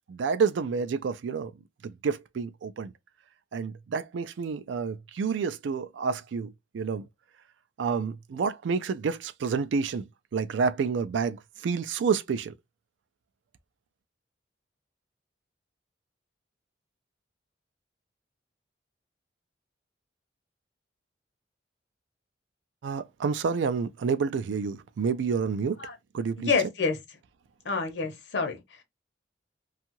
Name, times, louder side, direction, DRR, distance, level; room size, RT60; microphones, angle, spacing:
voice 1, 0.1-1.5 1.8-2.9 3.5-7.1 7.8-10.1 10.3-12.5 22.8-25.8 26.1-26.5, right 5 dB, 80° right, 0.3 m, -29 dB
voice 2, 26.4-27.0 27.6-28.8, left 4 dB, 65° left, 0.7 m, -28 dB
2.7 x 2.4 x 2.9 m
head